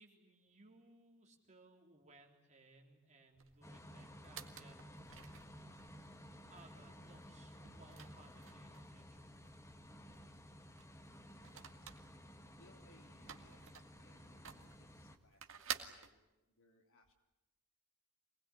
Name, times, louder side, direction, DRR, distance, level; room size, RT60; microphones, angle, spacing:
voice 1, 0.0-5.6 6.5-9.3, right 2 dB, 35° right, 2 dB, 3.7 m, -64 dB
sound 1, 3.4-16.1, right 8 dB, 60° right, 1.9 m, -53 dB
sound 2, 3.6-15.2, equal, 15° left, 1.4 m, -56 dB
voice 2, 10.0-10.3 12.6-17.1, left 1 dB, 60° left, 3 dB, 3.6 m, -69 dB
26.0 x 20.0 x 10.0 m, 0.99 s
head